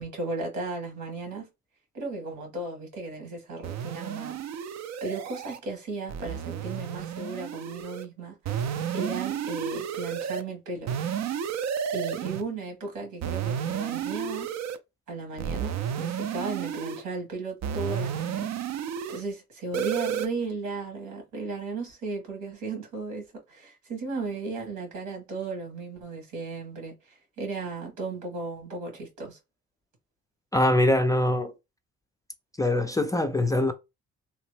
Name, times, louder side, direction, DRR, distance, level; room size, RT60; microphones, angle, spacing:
voice 1, 0.0-1.5 1.9-4.4 5.0-8.4 8.9-10.9 11.9-14.5 15.1-18.5 19.1-29.4, right 3 dB, 85° right, 1.7 m, -35 dB
sound 1, 3.6-5.6 6.1-8.0 8.4-10.4 10.9-12.4 13.2-14.8 15.4-17.0 17.6-19.2 19.7-20.3, right 8 dB, 60° right, 0.5 m, -32 dB
voice 2, 30.5-31.6 32.6-33.7, left 1 dB, 10° left, 0.4 m, -23 dB
3.0 x 2.0 x 3.1 m
cardioid pair, 90°, 30 cm